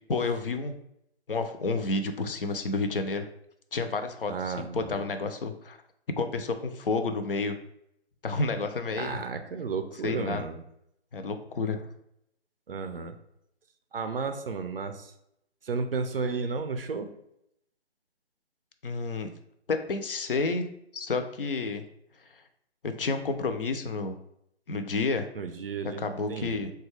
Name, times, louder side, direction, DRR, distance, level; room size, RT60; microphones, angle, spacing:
voice 1, 0.1-0.8 1.3-3.3 3.7-5.8 6.2-7.6 8.2-9.2 10.0-10.4 11.1-11.8 18.8-19.3 19.7-20.7 20.9-21.9 22.8-24.1 24.7-25.3 26.0-26.7, left 3 dB, 55° left, 7 dB, 0.4 m, -30 dB
voice 2, 4.3-5.0 8.9-10.6 12.7-13.2 13.9-15.1 15.6-17.1 25.3-26.7, right 4 dB, 55° right, 7 dB, 0.4 m, -33 dB
4.0 x 2.2 x 3.1 m, 0.78 s
figure-of-eight pair, 150°, 34 cm